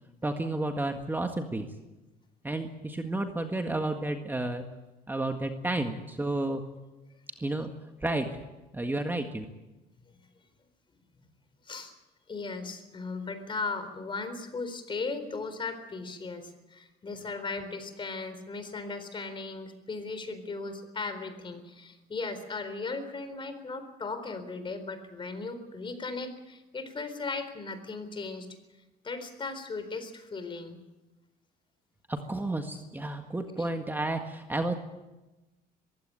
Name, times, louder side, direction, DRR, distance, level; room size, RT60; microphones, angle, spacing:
voice 1, 0.2-1.7 2.4-4.6 5.1-6.6 7.4-7.7 8.0-8.4 8.7-9.5 32.1-34.7, right 2 dB, 10° right, 5 dB, 1.7 m, -31 dB
voice 2, 12.3-28.6 29.0-30.8 33.6-33.7, left 3 dB, 30° left, 10 dB, 4.0 m, -37 dB
22.0 x 16.0 x 9.0 m, 1.1 s
cardioid pair, 110°, 17 cm